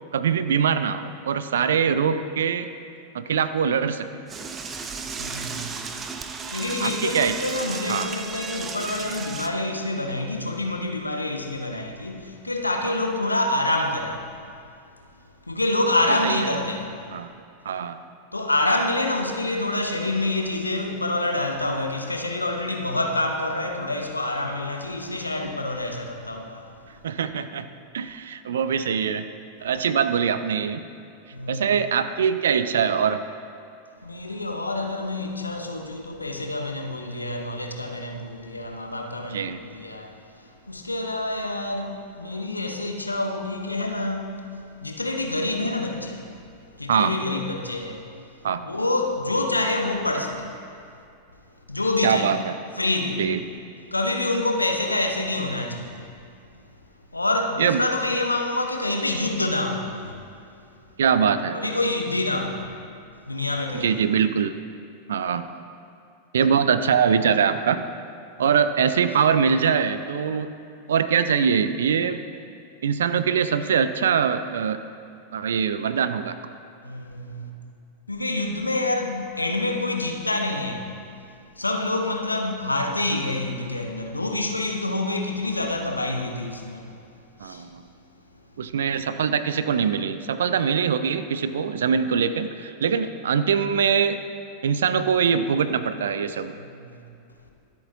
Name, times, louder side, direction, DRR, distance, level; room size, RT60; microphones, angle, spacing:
voice 1, 0.1-2.7 3.1-4.1 6.8-7.3 7.9-8.1 12.8-12.9 16.1-16.5 17.1-17.3 17.6-18.0 27.0-27.7 27.9-29.3 29.6-30.8 31.5-33.2 39.3-39.6 46.9-47.1 48.4-48.6 52.0-52.6 53.2-53.4 57.6-57.8 61.0-61.6 63.7-64.6 65.1-65.4 66.3-67.8 68.4-70.5 70.9-72.2 72.8-74.8 75.3-76.4 87.4-87.8 88.6-94.2 94.6-96.5, right 7 dB, 65° right, 0.6 m, -23 dB
Door / Toilet flush, 4.3-9.5, right 5 dB, 20° right, 0.8 m, -34 dB
voice 2, 5.2-6.0 6.5-14.3 15.5-17.0 18.3-26.7 31.3-31.6 34.0-40.1 40.7-44.4 44.8-46.3 46.8-48.1 48.6-50.5 51.7-52.3 52.8-53.3 53.9-56.1 57.1-60.2 61.5-62.6 63.3-63.9 68.4-68.5 76.8-77.5 78.1-81.0 81.6-86.9 87.4-87.6 96.6-97.0, left 2 dB, 85° left, 1.1 m, -27 dB
24.0 x 8.4 x 2.7 m
figure-of-eight pair, 90°, 0 cm